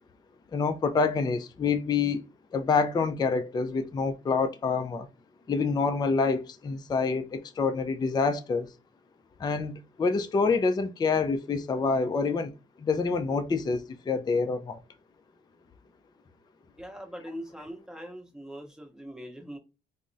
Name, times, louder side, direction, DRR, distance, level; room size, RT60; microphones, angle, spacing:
voice 1, 0.5-2.2 2.5-5.1 5.5-8.7 9.4-14.8, left 4 dB, 20° left, 0.4 m, -27 dB
voice 2, 16.8-19.6, equal, 5° right, 0.8 m, -41 dB
3.5 x 2.0 x 2.5 m
cardioid pair, 90°, 20 cm